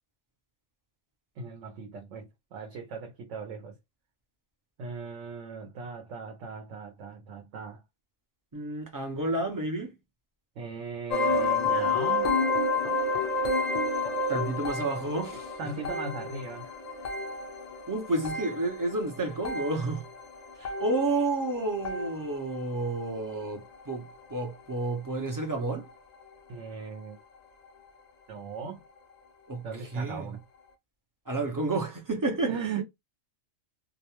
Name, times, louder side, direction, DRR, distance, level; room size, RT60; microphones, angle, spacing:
voice 1, 1.4-3.8 4.8-7.8 10.6-12.4 15.3-16.8 26.5-27.2 28.3-28.8 29.6-30.4 32.5-32.8, right 5 dB, 80° right, 0.9 m, -38 dB
voice 2, 8.5-10.0 14.3-15.5 17.9-20.0 20.6-25.9 29.5-29.7 29.9-30.4 31.3-32.5, right 2 dB, 30° right, 0.4 m, -30 dB
sound 1, 11.1-22.6 22.8-23.3 23.9-24.1 24.4-24.5 25.1-25.2, left 3 dB, 55° left, 0.5 m, -30 dB
2.3 x 2.0 x 2.9 m
omnidirectional pair, 1.2 m